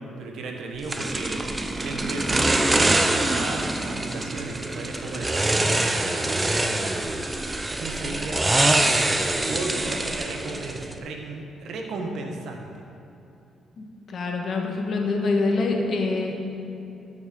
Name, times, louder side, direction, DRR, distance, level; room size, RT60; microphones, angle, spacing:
voice 1, 0.2-1.4 1.8-7.1 7.8-12.8, right 3 dB, 70° right, 2 dB, 1.2 m, -35 dB
sound 1, 0.9-11.0, right 2 dB, 15° right, 0.6 m, -24 dB
voice 2, 13.8-16.4, left 3 dB, 55° left, 1 dB, 1.4 m, -25 dB
13.0 x 6.2 x 3.9 m, 2.8 s
cardioid pair, 90°, 0 cm